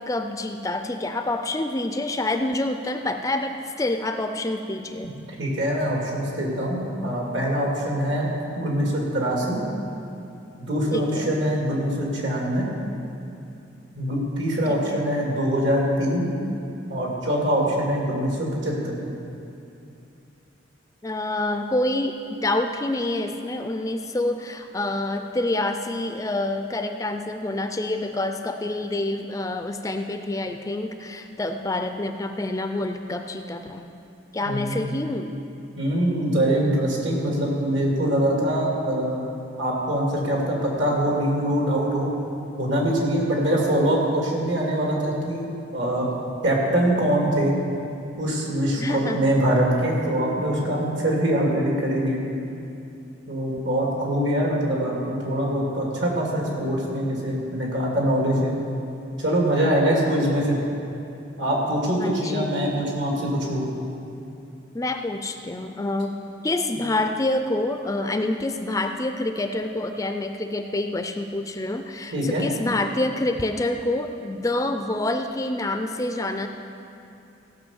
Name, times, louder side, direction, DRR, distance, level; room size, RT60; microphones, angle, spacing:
voice 1, 0.0-3.5 3.8-5.1 10.9-11.3 14.7-15.0 21.0-33.8 34.3-35.4 48.8-49.2 62.0-62.6 64.7-66.1 66.4-76.5, left 2 dB, 15° left, 6 dB, 0.4 m, -27 dB
voice 2, 5.4-8.3 8.6-9.6 10.6-12.7 14.0-16.3 16.9-19.0 34.4-34.8 35.8-39.2 39.6-42.1 42.6-46.1 46.4-47.6 48.2-52.2 53.3-58.5 59.2-60.6 61.4-63.7 72.1-72.5, right 1 dB, 75° right, -2 dB, 2.5 m, -23 dB
16.0 x 5.8 x 7.1 m, 2.7 s
head